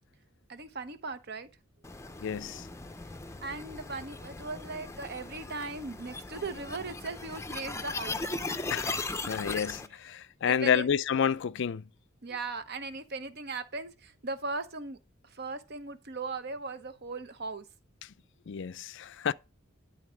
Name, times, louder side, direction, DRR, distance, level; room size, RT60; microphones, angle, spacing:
voice 1, 0.5-1.5 3.4-8.3 10.4-10.9 12.2-15.0 15.2-17.6, right 3 dB, 55° right, 0.9 m, -38 dB
sound 1, 1.8-9.9, left 3 dB, 15° left, 0.5 m, -38 dB
voice 2, 2.2-2.7 8.7-11.8 18.5-19.3, left 7 dB, 65° left, 0.4 m, -30 dB
10.5 x 4.0 x 6.2 m
head